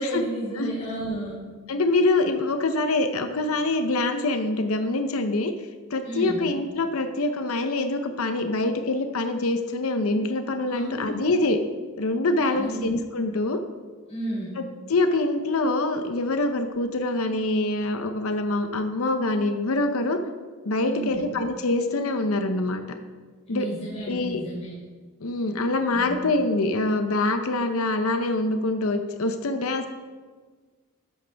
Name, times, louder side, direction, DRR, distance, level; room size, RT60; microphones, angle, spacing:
voice 1, 0.0-1.4 6.0-6.4 10.7-11.2 12.5-12.8 14.1-14.5 20.8-21.2 23.5-24.7 25.9-26.1, right 1 dB, 30° left, -7 dB, 3.6 m, -32 dB
voice 2, 1.7-11.6 12.0-13.6 14.6-14.7 14.9-20.2 20.6-22.8 23.5-23.7 24.1-24.4 25.2-29.9, left 2 dB, 85° left, 7 dB, 0.7 m, -25 dB
13.0 x 10.5 x 3.5 m, 1.5 s
head